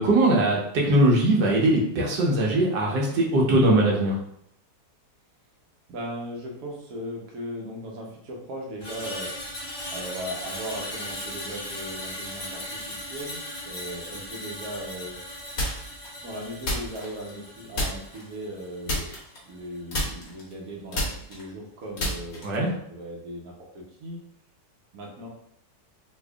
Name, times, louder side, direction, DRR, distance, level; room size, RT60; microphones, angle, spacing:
voice 1, 0.0-4.2 22.4-22.7, right 1 dB, 75° right, -2 dB, 1.4 m, -21 dB
voice 2, 5.9-9.3 9.9-15.2 16.2-19.1 19.5-22.5 22.9-24.2 24.9-25.3, equal, 60° right, -2 dB, 1.1 m, -38 dB
Screech, 8.8-19.2 19.5-19.8, left 1 dB, 25° left, 0.5 m, -38 dB
sound 1, 15.6-16.1 16.6-17.5 17.7-18.3 18.8-19.6 19.9-22.7, left 1 dB, 55° left, 1.4 m, -30 dB
4.2 x 2.7 x 2.3 m, 0.70 s
omnidirectional pair, 1.9 m